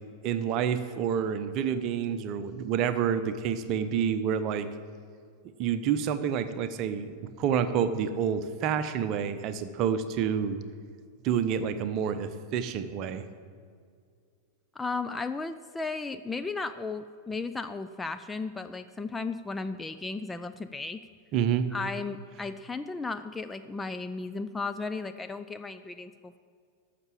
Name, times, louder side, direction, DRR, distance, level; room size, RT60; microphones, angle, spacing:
voice 1, 0.2-4.7 5.6-10.6 11.2-13.2 21.3-21.7, right 8 dB, 40° right, 11 dB, 0.8 m, -28 dB
voice 2, 14.8-21.1 21.7-26.4, left 3 dB, 10° left, 9 dB, 0.4 m, -35 dB
12.5 x 6.8 x 7.6 m, 2.2 s
figure-of-eight pair, 90°, 0 cm